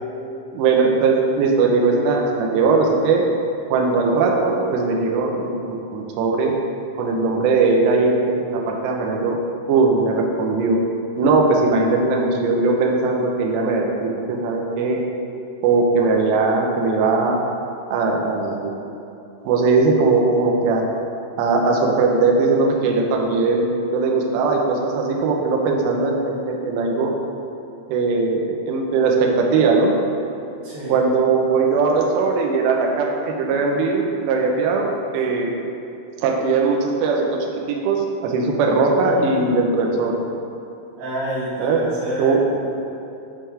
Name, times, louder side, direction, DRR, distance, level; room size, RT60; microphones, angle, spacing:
voice 1, 0.5-3.2 3.7-6.5 7.0-9.4 9.7-10.8 11.2-15.0 15.6-17.4 17.9-18.7 19.5-20.8 21.4-27.1 27.9-29.9 30.9-35.6 36.2-40.2 41.6-41.8 42.2-42.4, right 4 dB, 85° right, 0 dB, 2.6 m, -19 dB
voice 2, 30.6-31.0 33.5-33.6 35.1-35.2 37.7-37.8 39.0-39.1 39.4-39.5 41.0-42.5, right 1 dB, 60° right, -9 dB, 3.1 m, -28 dB
8.6 x 4.4 x 3.4 m, 2.7 s
omnidirectional pair, 5.5 m